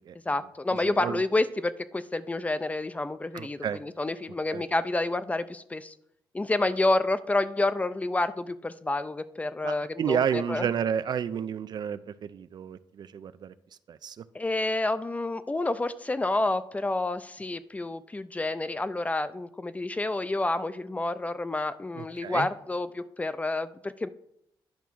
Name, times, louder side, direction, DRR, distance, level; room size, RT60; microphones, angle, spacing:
voice 1, 0.3-5.9 6.3-10.7 14.3-24.1, left 2 dB, 15° left, 14 dB, 0.4 m, -29 dB
voice 2, 0.9-1.2 3.3-3.8 4.5-4.6 9.6-13.5 13.9-14.2 22.0-22.5, right 8 dB, 55° right, 14 dB, 0.4 m, -31 dB
10.5 x 3.5 x 6.1 m, 0.74 s
cardioid pair, 110°, 9 cm